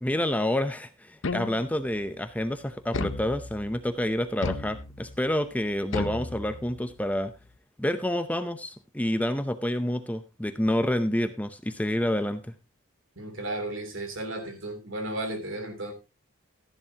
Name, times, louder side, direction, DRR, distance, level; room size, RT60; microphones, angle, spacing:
voice 1, 0.0-7.3 7.8-12.5, left 1 dB, 5° left, 10 dB, 0.7 m, -28 dB
sound 1, 1.2-1.9 2.9-3.8 4.4-5.2 5.9-6.9, left 3 dB, 65° left, 0.9 m, -34 dB
voice 2, 13.2-15.9, right 1 dB, 65° right, 7 dB, 3.2 m, -34 dB
14.0 x 11.0 x 2.9 m, 0.26 s
head